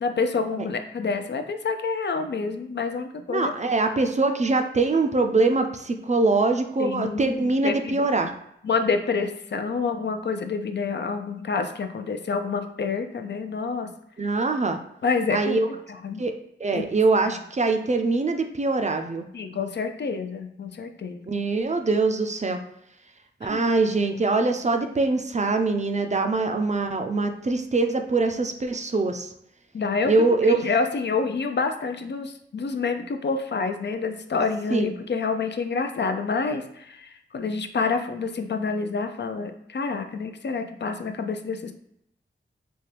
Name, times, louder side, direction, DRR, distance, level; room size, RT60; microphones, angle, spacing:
voice 1, 0.0-3.5 3.8-3.9 6.8-8.0 8.6-13.9 15.0-15.6 16.0-16.2 16.7-16.8 17.3-17.4 19.3-21.2 23.4-23.6 29.7-30.1 30.5-41.7, left 4 dB, 60° left, 7 dB, 0.4 m, -28 dB
voice 2, 3.3-8.3 14.2-14.8 15.3-15.7 16.2-16.3 16.6-19.3 21.3-22.6 23.4-29.3 30.0-30.7 34.7-34.9, right 3 dB, 35° right, 5 dB, 0.4 m, -23 dB
4.2 x 2.2 x 3.3 m, 0.75 s
wide cardioid pair, 65°, 21 cm